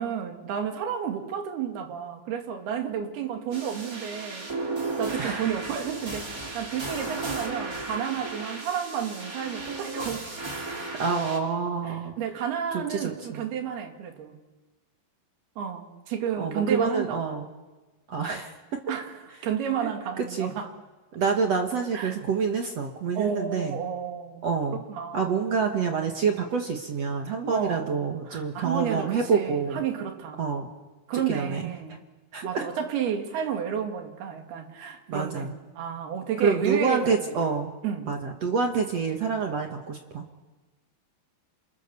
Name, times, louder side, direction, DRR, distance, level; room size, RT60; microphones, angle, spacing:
voice 1, 0.0-4.5 5.0-10.6 11.9-14.4 15.6-17.4 18.9-19.1 19.4-20.7 21.9-22.2 23.2-25.3 27.5-30.4 31.1-32.0 32.4-37.4 37.8-38.1, right 8 dB, 90° right, 5 dB, 4.1 m, -31 dB
sound 1, 3.5-11.4, right 3 dB, 25° right, 3.2 m, -35 dB
voice 2, 11.0-12.1 12.7-13.5 16.4-17.5 18.1-18.5 19.8-19.9 20.2-20.5 21.1-23.8 24.4-24.8 25.1-29.8 30.4-30.7 31.3-31.6 32.3-32.7 35.1-35.5 36.4-37.7 38.1-40.2, right 5 dB, 55° right, 3 dB, 2.2 m, -27 dB
28.5 x 27.5 x 6.9 m, 1.2 s
omnidirectional pair, 4.3 m